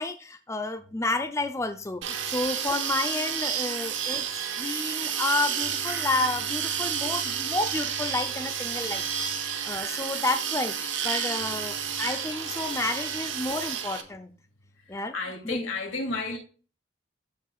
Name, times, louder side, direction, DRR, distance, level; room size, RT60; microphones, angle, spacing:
voice 1, 0.0-4.3 4.6-14.3 14.9-15.1 15.5-15.6, left 2 dB, 15° left, 0.5 m, -30 dB
sound 1, 2.0-14.0, right 8 dB, 80° right, 1.1 m, -31 dB
voice 2, 9.6-10.0 11.7-12.1 12.6-12.9 14.8-16.4, left 3 dB, 90° left, 2.7 m, -35 dB
13.5 x 4.7 x 2.4 m
head